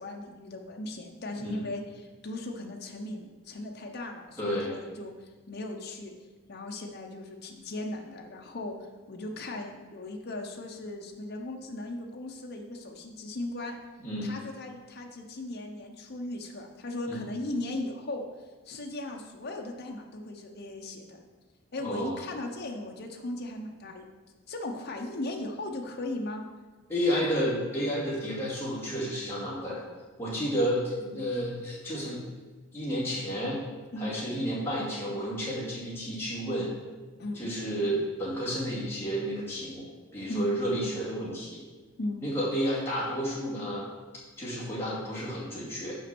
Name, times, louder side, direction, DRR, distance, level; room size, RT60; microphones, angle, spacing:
voice 1, 0.0-6.1 6.5-13.8 14.2-18.2 18.7-21.2 21.7-24.1 24.5-26.4 27.1-27.2 30.3-30.5 33.9-34.2 37.2-37.5 40.3-40.6 42.0-42.2, left 2 dB, 50° left, 2 dB, 0.7 m, -37 dB
voice 2, 4.4-4.7 14.0-14.3 17.1-17.3 21.8-22.2 26.9-29.8 30.2-32.2 32.7-33.6 34.0-36.7 37.3-39.9 40.1-41.6 42.2-43.8 44.4-46.0, equal, 10° left, -8 dB, 2.2 m, -31 dB
6.1 x 5.2 x 6.0 m, 1.3 s
head